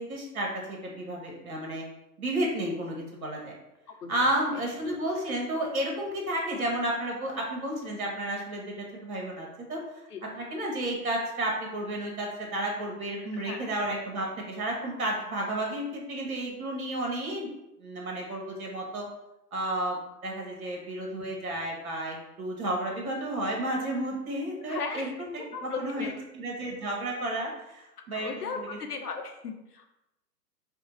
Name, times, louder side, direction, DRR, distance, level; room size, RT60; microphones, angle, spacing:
voice 1, 0.0-1.8 2.2-3.5 4.1-9.8 10.3-17.5 17.8-19.1 19.5-28.8, right 1 dB, 60° right, -1 dB, 1.6 m, -32 dB
voice 2, 24.6-25.1 25.5-26.1 28.1-29.9, left 4 dB, 70° left, 4 dB, 0.8 m, -36 dB
5.2 x 2.3 x 4.2 m, 0.92 s
figure-of-eight pair, 115°, 48 cm